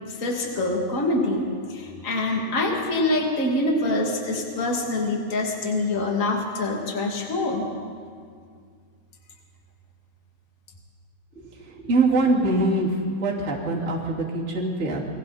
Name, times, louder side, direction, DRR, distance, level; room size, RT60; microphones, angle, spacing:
voice 1, 0.1-7.7, left 2 dB, 25° left, 0 dB, 2.5 m, -25 dB
voice 2, 11.4-15.0, right 2 dB, 25° right, -4 dB, 2.9 m, -23 dB
29.5 x 22.0 x 4.3 m, 2.1 s
omnidirectional pair, 3.5 m